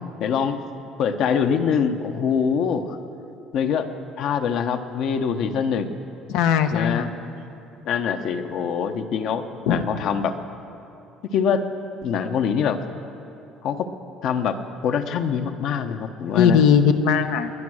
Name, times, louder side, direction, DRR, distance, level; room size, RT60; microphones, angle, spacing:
voice 1, 0.2-0.6 1.0-3.0 3.5-3.9 4.2-5.9 6.7-7.1 7.9-10.4 11.3-11.7 12.0-12.8 13.6-13.9 14.2-14.6 14.8-16.6, left 7 dB, 60° left, 8 dB, 1.0 m, -24 dB
voice 2, 6.3-7.1 9.7-9.8 16.3-17.5, left 7 dB, 80° left, 8 dB, 0.9 m, -19 dB
22.0 x 9.7 x 6.3 m, 2.7 s
cardioid pair, 125°, 0 cm